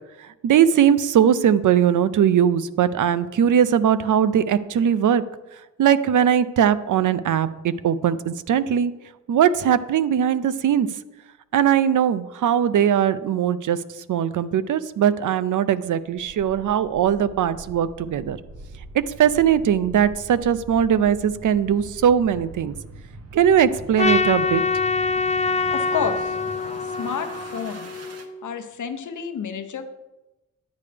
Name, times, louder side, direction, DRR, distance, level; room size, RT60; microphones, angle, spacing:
voice 1, 0.4-5.2 5.8-8.9 9.3-10.9 11.5-13.8 14.1-18.4 18.9-22.7 23.3-24.6, right 9 dB, 90° right, 14 dB, 0.5 m, -20 dB
sound 1, 16.1-28.3, right 2 dB, 55° right, 1.0 m, -42 dB
Trumpet, 24.0-28.4, left 4 dB, 25° left, 0.4 m, -24 dB
voice 2, 25.7-26.4 27.0-28.0 28.4-29.9, left 7 dB, 80° left, 8 dB, 0.7 m, -30 dB
10.5 x 9.5 x 3.3 m, 1.0 s
wide cardioid pair, 135°, 30 cm